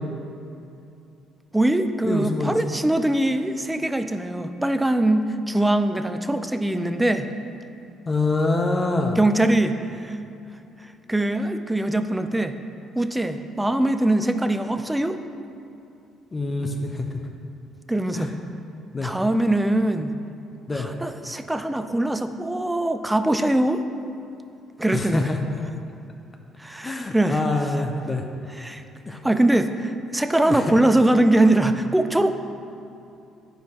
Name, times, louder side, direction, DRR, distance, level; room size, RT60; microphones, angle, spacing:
voice 1, 1.5-7.3 9.2-10.2 11.1-12.5 13.0-15.2 17.9-18.3 19.0-20.2 20.7-23.8 24.8-25.3 26.6-27.4 28.5-28.8 29.1-32.3, right 1 dB, 10° right, 9 dB, 0.5 m, -22 dB
voice 2, 2.0-2.6 8.1-9.2 16.3-17.1 18.1-18.3 18.9-19.1 20.7-20.9 24.9-25.4 26.8-28.2 29.1-29.2 30.4-30.8, left 2 dB, 30° left, 3 dB, 0.7 m, -25 dB
9.2 x 4.8 x 4.5 m, 2.7 s
supercardioid pair, 65°, 0 cm